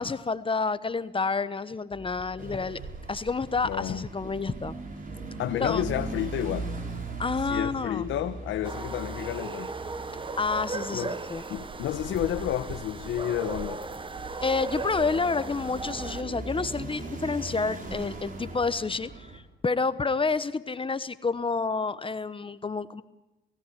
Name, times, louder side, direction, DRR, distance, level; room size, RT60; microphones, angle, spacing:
voice 1, 0.0-2.8 3.1-4.7 5.6-5.8 7.2-8.1 10.4-11.4 14.4-23.0, left 4 dB, 25° left, 14 dB, 1.0 m, -29 dB
sound 1, 2.4-19.4, right 3 dB, 45° right, 5.5 m, -39 dB
voice 2, 3.6-4.0 5.4-6.7 7.4-9.7 10.9-11.1 11.5-13.8, left 12 dB, 85° left, 7 dB, 1.2 m, -30 dB
sound 2, 8.6-16.2, right 3 dB, 25° right, 1.2 m, -37 dB
27.5 x 17.0 x 10.0 m, 1.0 s
cardioid pair, 90°, 20 cm